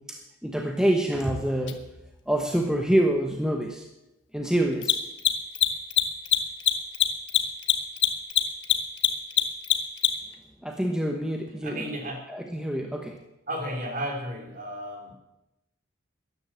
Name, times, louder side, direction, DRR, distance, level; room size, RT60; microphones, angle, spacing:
voice 1, 0.0-1.8 2.3-3.9 4.3-5.0 10.6-11.9 12.3-13.2, right 1 dB, 5° right, 2 dB, 1.1 m, -26 dB
Mechanisms, 1.7-1.8 4.7-10.3, left 12 dB, 60° left, 1.4 m, -22 dB
voice 2, 11.6-12.3 13.5-15.2, equal, 45° right, 2 dB, 3.3 m, -33 dB
13.5 x 10.5 x 7.5 m, 0.92 s
head